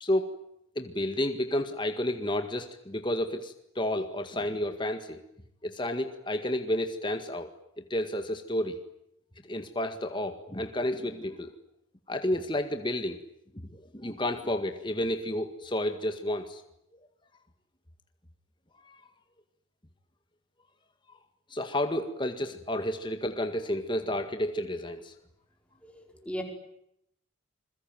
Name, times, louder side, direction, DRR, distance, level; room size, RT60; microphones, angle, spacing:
voice 1, 0.0-0.3 0.8-5.2 5.6-7.5 7.9-8.8 9.5-11.5 12.1-13.2 13.7-16.6 18.8-19.0 21.5-25.1, left 1 dB, 25° left, 7 dB, 1.8 m, -31 dB
voice 2, 25.8-26.4, equal, 5° left, 2 dB, 4.9 m, -37 dB
28.5 x 22.0 x 9.2 m, 0.76 s
head